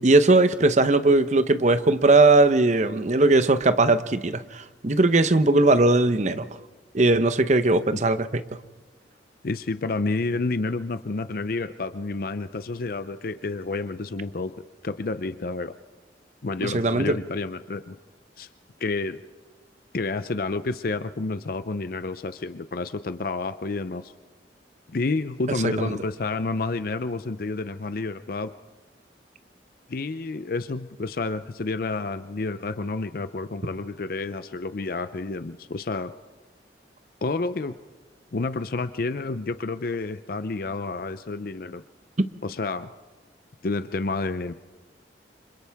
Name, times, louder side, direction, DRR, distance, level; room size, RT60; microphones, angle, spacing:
voice 1, 0.0-6.5 6.9-8.4 16.6-17.2 25.6-26.0 42.2-42.3, right 2 dB, 40° right, 0.8 m, -19 dB
voice 2, 9.4-14.5 14.8-15.8 16.4-18.0 18.4-18.5 18.8-19.2 19.9-24.1 24.9-28.5 29.9-36.2 37.2-37.8 38.3-41.8 42.4-42.9 43.6-44.5, left 3 dB, 55° left, 0.5 m, -29 dB
29.0 x 26.5 x 3.5 m
head